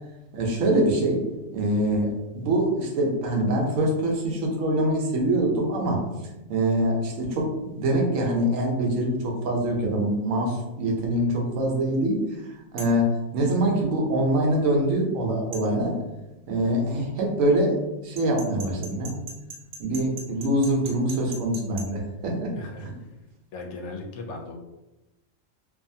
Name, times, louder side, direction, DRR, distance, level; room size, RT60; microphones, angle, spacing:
voice 1, 0.3-1.2 1.5-6.0 6.5-16.0 16.5-19.2 19.8-22.5 22.8-22.9, right 1 dB, 75° right, 0 dB, 1.0 m, -24 dB
sound 1, 12.8-13.0 15.5-15.7 18.2-21.9, right 3 dB, 55° right, 0.7 m, -39 dB
voice 2, 22.5-22.9 23.5-24.5, left 2 dB, 65° left, 1 dB, 0.8 m, -37 dB
2.6 x 2.4 x 2.6 m, 0.99 s
omnidirectional pair, 1.4 m